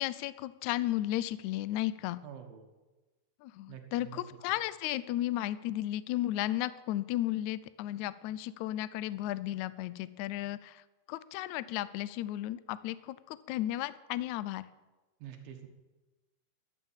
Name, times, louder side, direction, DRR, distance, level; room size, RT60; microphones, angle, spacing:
voice 1, 0.0-2.2 3.4-10.8 11.1-14.6, left 14 dB, 85° left, 16 dB, 1.7 m, -34 dB
voice 2, 2.2-2.7 3.7-4.2 15.2-15.7, right 9 dB, 85° right, 4 dB, 3.2 m, -47 dB
12.5 x 12.5 x 7.4 m, 1.2 s
omnidirectional pair, 4.1 m